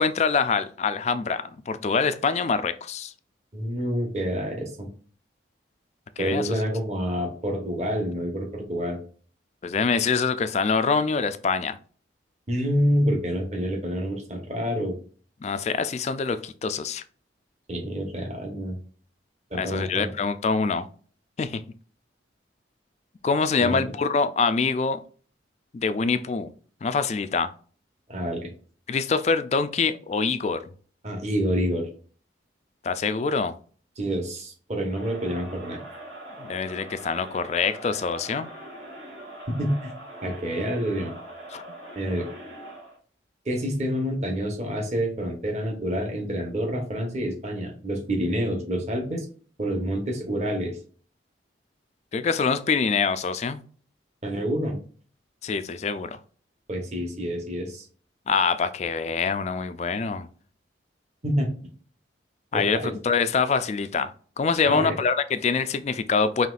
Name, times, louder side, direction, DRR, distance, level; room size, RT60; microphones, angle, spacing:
voice 1, 0.0-3.1 6.2-6.5 9.6-11.8 15.4-17.0 19.6-20.9 21.4-21.6 23.2-25.0 25.7-26.5 26.8-27.5 28.9-30.6 32.8-33.5 36.4-38.5 41.5-41.6 52.1-53.6 55.4-56.2 58.3-60.3 62.5-66.5, left 5 dB, 35° left, 0.3 m, -25 dB
voice 2, 3.5-4.9 6.2-9.0 12.5-14.9 17.7-18.8 19.5-20.1 23.6-23.8 28.1-28.5 31.0-31.9 34.0-35.8 39.5-39.9 40.2-41.1 41.9-42.3 43.4-49.3 49.6-50.8 54.2-54.8 56.7-57.9 61.2-61.5 62.5-62.9 64.6-64.9, equal, 35° right, 1.1 m, -27 dB
Crowd, 34.9-43.0, right 1 dB, 80° right, 2.0 m, -42 dB
5.6 x 3.0 x 2.4 m
head